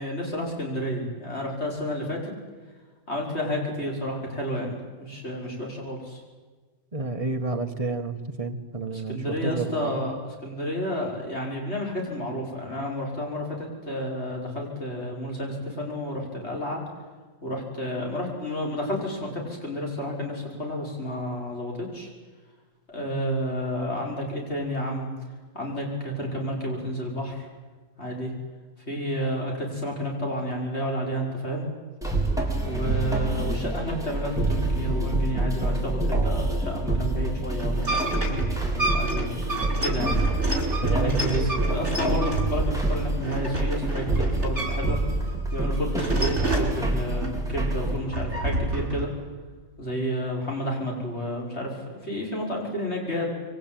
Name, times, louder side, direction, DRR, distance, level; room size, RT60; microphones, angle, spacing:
voice 1, 0.0-2.3 3.1-6.2 8.9-10.2 10.4-16.8 17.4-22.1 22.9-25.1 25.5-27.5 28.0-28.3 28.9-31.7 32.6-39.4 39.8-40.1 40.8-49.1 49.8-53.3, equal, 50° left, -1 dB, 6.4 m, -31 dB
voice 2, 6.9-9.9 40.8-41.4, right 3 dB, 25° right, 5 dB, 1.8 m, -30 dB
sound 1, 32.0-48.0, right 2 dB, ahead, 4.3 m, -27 dB
sound 2, 37.6-45.0 45.3-46.8 47.2-49.0, right 2 dB, 50° right, 5.4 m, -30 dB
26.5 x 23.5 x 9.3 m, 1.3 s
omnidirectional pair, 1.5 m